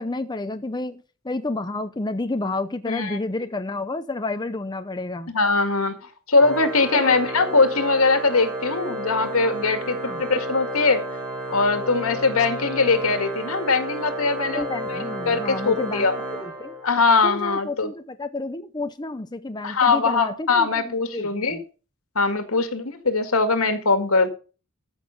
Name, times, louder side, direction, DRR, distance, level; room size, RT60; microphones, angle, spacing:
voice 1, 0.0-5.3 6.9-7.2 7.5-7.6 10.0-10.2 14.4-16.1 16.4-16.7 17.2-21.6, left 2 dB, 20° left, 0.6 m, -30 dB
voice 2, 2.9-3.2 5.3-6.0 6.3-11.0 11.5-14.6 14.9-15.0 15.3-16.1 16.8-17.9 19.6-21.6 22.2-24.3, left 3 dB, 75° left, 2.0 m, -21 dB
Organ, 6.3-17.2, right 1 dB, 10° right, 4.4 m, -32 dB
14.5 x 6.3 x 5.6 m
head